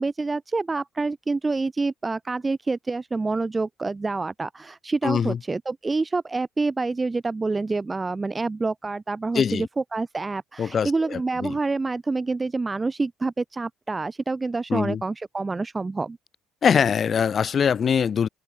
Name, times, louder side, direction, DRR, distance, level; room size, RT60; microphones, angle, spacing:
voice 1, 0.0-16.2, right 3 dB, 15° right, 0.9 m, -27 dB
voice 2, 5.0-5.4 9.3-9.7 10.6-11.6 14.7-15.0 16.6-18.3, left 7 dB, 35° left, 1.3 m, -23 dB
open air
cardioid pair, 140°, 0 cm